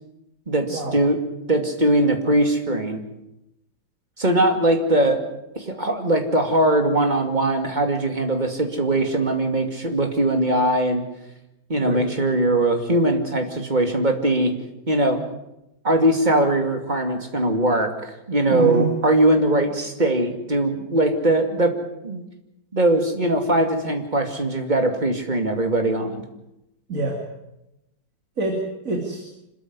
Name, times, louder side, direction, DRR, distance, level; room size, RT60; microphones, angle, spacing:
voice 1, 0.5-1.2 1.5-3.0 4.2-5.2 5.6-11.0 11.7-14.6 14.9-15.2 15.8-21.7 22.0-22.2 22.7-26.2, right 1 dB, 25° right, 5 dB, 2.6 m, -21 dB
voice 2, 18.5-18.9 26.9-27.2 28.4-29.2, right 2 dB, 50° right, 2 dB, 3.1 m, -26 dB
26.0 x 13.5 x 9.7 m, 0.90 s
omnidirectional pair, 1.9 m